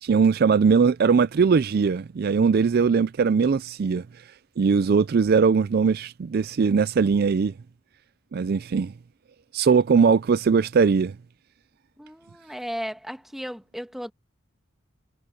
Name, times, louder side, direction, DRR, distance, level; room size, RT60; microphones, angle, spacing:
voice 1, 0.0-4.2 4.6-7.5 8.3-8.9 9.5-11.2, right 5 dB, 50° right, 0.4 m, -20 dB
voice 2, 12.0-14.1, equal, ahead, 2.1 m, -35 dB
head